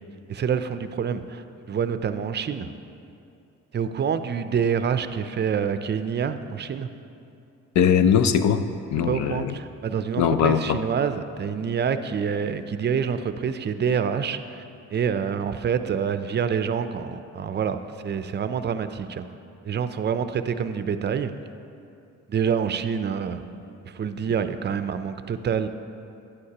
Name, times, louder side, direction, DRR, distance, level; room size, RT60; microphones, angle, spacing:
voice 1, 0.3-2.7 3.7-6.9 9.1-14.6 14.9-19.2 19.6-21.3 22.3-23.4 23.8-25.7, right 7 dB, 35° right, 10 dB, 0.5 m, -27 dB
voice 2, 7.7-9.6 10.2-10.8, left 7 dB, 65° left, 10 dB, 0.6 m, -21 dB
11.0 x 9.9 x 2.9 m, 2.6 s
cardioid pair, 90°, 30 cm